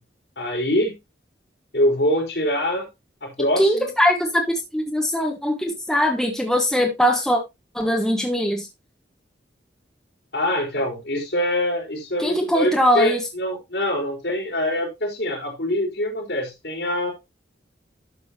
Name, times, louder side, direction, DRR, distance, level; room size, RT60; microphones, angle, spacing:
voice 1, 0.4-0.9 1.7-2.9 3.2-3.9 10.3-17.1, left 1 dB, 75° left, 3.8 m, -24 dB
voice 2, 3.4-4.4 4.7-7.4 7.7-8.7 12.2-13.3, equal, 5° left, 1.3 m, -21 dB
11.0 x 6.8 x 2.8 m
head